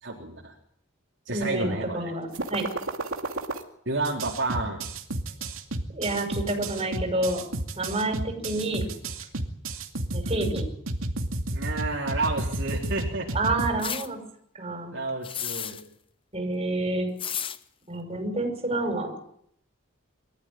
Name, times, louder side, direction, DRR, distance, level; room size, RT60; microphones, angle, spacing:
voice 1, 0.0-0.5 1.3-2.0 3.9-4.8 11.5-13.3 14.9-15.8, right 2 dB, 60° right, -3 dB, 3.9 m, -30 dB
voice 2, 1.3-2.7 5.9-7.4 7.8-8.9 10.1-10.6 13.3-14.2 14.5-14.9 16.3-17.1 17.9-19.1, right 2 dB, 30° right, 4 dB, 6.0 m, -28 dB
sound 1, 2.3-3.6 4.0-13.7, right 1 dB, 80° right, 2.4 m, -31 dB
sound 2, 13.8-14.1 15.2-15.9 17.2-17.6, left 8 dB, 25° left, 0.8 m, -32 dB
24.0 x 14.0 x 9.2 m, 0.70 s
head